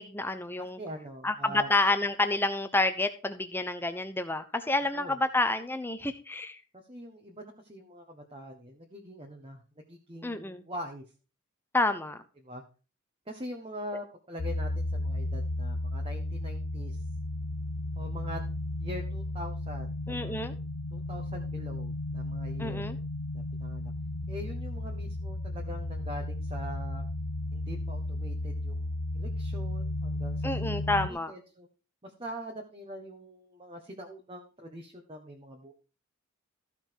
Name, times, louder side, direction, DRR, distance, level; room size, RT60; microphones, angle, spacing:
voice 1, 0.0-0.8 1.2-6.6 10.2-10.6 11.7-12.2 20.1-20.6 22.6-23.0 30.4-31.3, left 2 dB, 10° left, 0.8 m, -29 dB
voice 2, 0.6-1.7 4.9-5.2 6.9-9.6 9.9-11.0 12.4-12.6 13.3-17.0 18.0-18.4 18.8-20.4 20.9-22.9 23.3-23.9 24.3-27.0 27.5-31.7 32.0-35.7, equal, 25° right, 1.3 m, -43 dB
sound 1, 14.4-31.1, left 1 dB, 70° left, 0.7 m, -34 dB
14.0 x 5.7 x 4.6 m
head